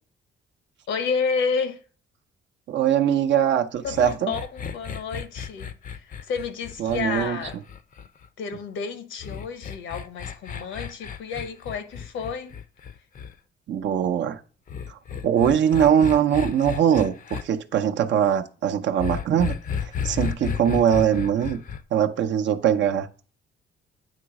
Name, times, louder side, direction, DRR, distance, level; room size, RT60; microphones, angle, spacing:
voice 1, 0.9-1.8 3.8-7.6 8.4-12.5, left 5 dB, 75° left, 1.0 m, -30 dB
voice 2, 2.7-4.3 6.8-7.4 13.7-14.4 14.9-15.0 15.2-19.6 20.0-21.6 21.9-23.1, right 9 dB, 65° right, 0.7 m, -21 dB
sound 1, 3.8-8.3 9.2-13.3 14.7-17.4 19.0-21.8, left 7 dB, 45° left, 0.6 m, -33 dB
9.1 x 3.1 x 4.7 m
cardioid pair, 90°, 20 cm